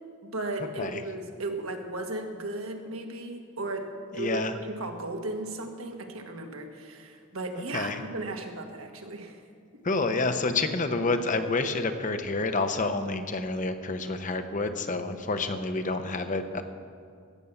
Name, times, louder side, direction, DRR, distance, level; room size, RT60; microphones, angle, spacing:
voice 1, 0.2-9.4, right 2 dB, 80° right, 4 dB, 1.4 m, -36 dB
voice 2, 4.2-4.5 7.7-8.0 9.8-16.6, left 3 dB, 35° left, 8 dB, 0.7 m, -28 dB
16.5 x 6.9 x 7.0 m, 2.3 s
head